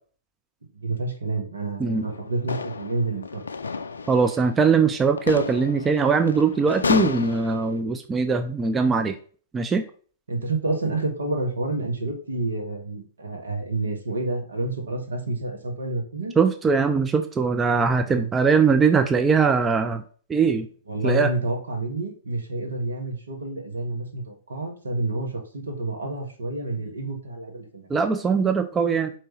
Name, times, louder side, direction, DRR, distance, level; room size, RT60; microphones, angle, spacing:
voice 1, 0.7-3.4 10.3-16.4 18.0-18.3 20.9-27.9, right 2 dB, 75° right, 3 dB, 1.1 m, -29 dB
sound 1, 1.9-7.8, left 4 dB, 75° left, 0.4 m, -31 dB
voice 2, 4.1-9.2 9.5-9.8 16.4-20.0 20.3-20.7 21.0-21.3 27.9-29.1, right 5 dB, 15° right, 8 dB, 0.4 m, -21 dB
4.5 x 3.0 x 3.0 m, 0.42 s
figure-of-eight pair, 110°, 0 cm